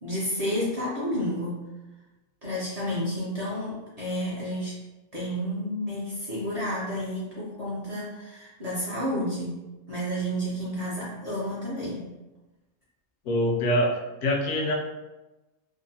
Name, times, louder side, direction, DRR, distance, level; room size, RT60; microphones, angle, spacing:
voice 1, 0.0-1.7 2.4-4.8 5.1-12.1, equal, 45° right, -8 dB, 0.5 m, -31 dB
voice 2, 13.2-14.7, equal, 70° left, 0 dB, 0.8 m, -25 dB
2.6 x 2.0 x 2.7 m, 1.1 s
omnidirectional pair, 1.4 m